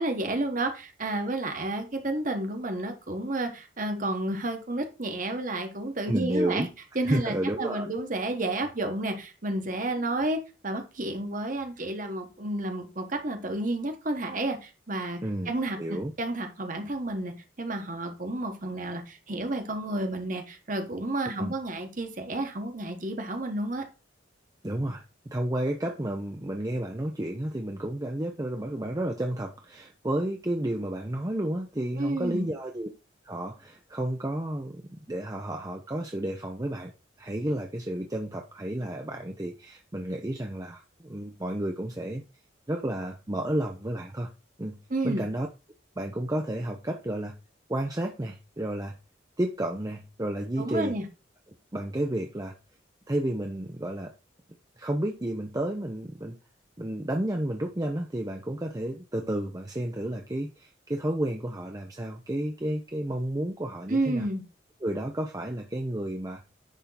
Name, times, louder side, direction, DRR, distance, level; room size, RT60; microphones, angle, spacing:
voice 1, 0.0-6.7 6.9-10.4 10.6-15.2 15.4-17.3 17.6-23.8 32.0-32.5 44.9-45.2 50.6-51.0 63.9-64.4, right 2 dB, 40° right, 5 dB, 1.3 m, -31 dB
voice 2, 6.1-6.7 7.0-7.9 15.2-15.5 15.8-16.1 21.4-21.5 24.6-32.9 33.2-36.9 37.2-42.2 42.7-44.3 44.6-44.8 45.0-45.5 46.0-47.3 47.7-49.0 49.4-50.9 51.7-52.5 53.1-54.1 54.8-56.3 56.8-64.3 64.8-66.4, right 1 dB, 20° right, 2 dB, 0.6 m, -31 dB
10.0 x 3.6 x 4.0 m, 0.30 s
head